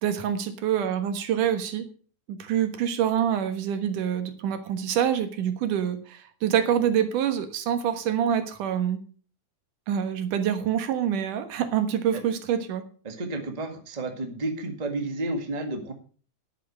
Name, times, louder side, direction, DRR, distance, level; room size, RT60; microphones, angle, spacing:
voice 1, 0.0-1.9 2.3-9.0 9.9-12.9, right 9 dB, 85° right, 9 dB, 2.9 m, -26 dB
voice 2, 13.0-15.9, right 2 dB, 20° right, 5 dB, 1.4 m, -31 dB
10.5 x 9.2 x 6.3 m, 0.40 s
omnidirectional pair, 3.6 m